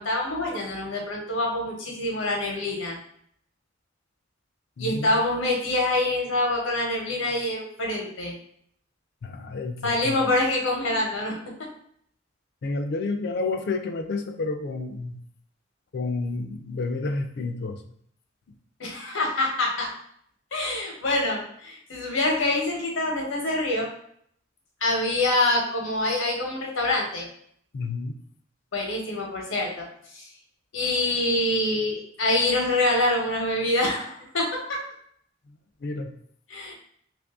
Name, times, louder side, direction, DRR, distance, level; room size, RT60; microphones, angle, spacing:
voice 1, 0.0-3.0 4.8-8.3 9.8-11.3 18.8-19.9 20.5-23.9 24.8-27.3 28.7-29.9 30.1-30.3 30.7-34.8 36.5-36.7, left 2 dB, 90° left, 0 dB, 1.0 m, -25 dB
voice 2, 4.8-5.2 9.2-10.2 12.6-15.2 15.9-17.8 27.7-28.1 35.5-36.1, left 3 dB, 60° left, 6 dB, 0.4 m, -30 dB
3.0 x 2.6 x 3.5 m, 0.66 s
head